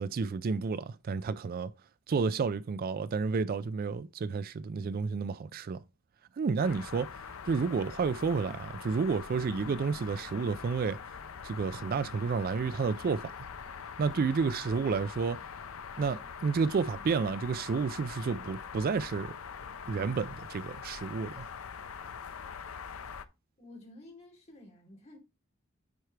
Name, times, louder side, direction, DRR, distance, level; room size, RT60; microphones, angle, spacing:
voice 1, 0.0-1.7 2.1-5.8 6.4-11.0 11.4-13.5 14.0-15.4 16.0-19.4 19.9-21.5, right 5 dB, 45° right, 0.3 m, -31 dB
sound 1, 6.6-23.2, left 6 dB, 80° left, 0.6 m, -43 dB
voice 2, 23.6-25.2, left 2 dB, 35° left, 3.1 m, -51 dB
9.5 x 4.5 x 3.2 m
head